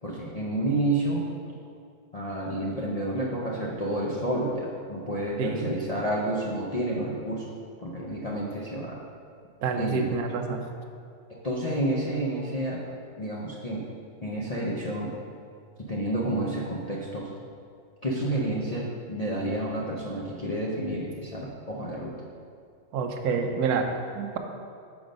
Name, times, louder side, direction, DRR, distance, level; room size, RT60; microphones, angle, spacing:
voice 1, 0.0-1.2 2.1-7.5 7.8-9.0 9.8-10.1 11.3-12.8 13.2-13.9 14.2-15.1 15.8-17.3 18.0-22.1, right 1 dB, 45° left, -5 dB, 0.5 m, -30 dB
voice 2, 5.4-5.7 9.6-10.6 22.9-24.4, right 5 dB, 85° right, 4 dB, 1.2 m, -28 dB
6.1 x 5.1 x 5.1 m, 2.3 s
omnidirectional pair, 1.6 m